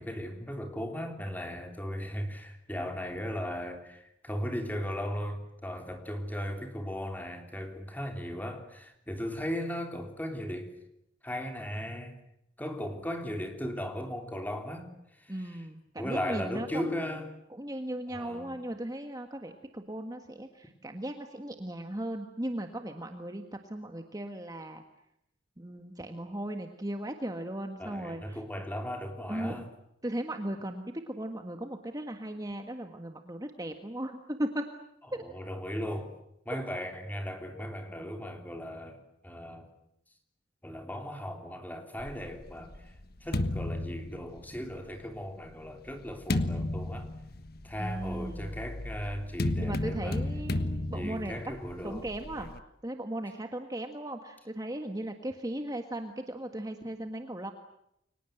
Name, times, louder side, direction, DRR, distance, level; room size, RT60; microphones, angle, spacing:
voice 1, 0.0-10.7 11.2-12.2 12.6-15.6 16.0-17.3 18.1-18.6 27.8-29.7 35.2-36.1 36.4-39.7 40.6-42.9 43.2-47.1 47.6-50.2 50.9-52.1, equal, 10° left, 5 dB, 3.4 m, -37 dB
voice 2, 15.3-16.8 17.5-24.8 25.6-28.4 29.3-29.6 30.0-34.6 35.1-35.2 36.5-36.6 47.8-48.6 49.6-51.4 51.8-52.5 52.8-57.5, right 1 dB, 20° right, 5 dB, 1.6 m, -37 dB
sound 1, 42.0-44.8 45.5-52.6, left 1 dB, 50° left, 1.5 m, -34 dB
30.0 x 24.0 x 8.0 m, 0.78 s
head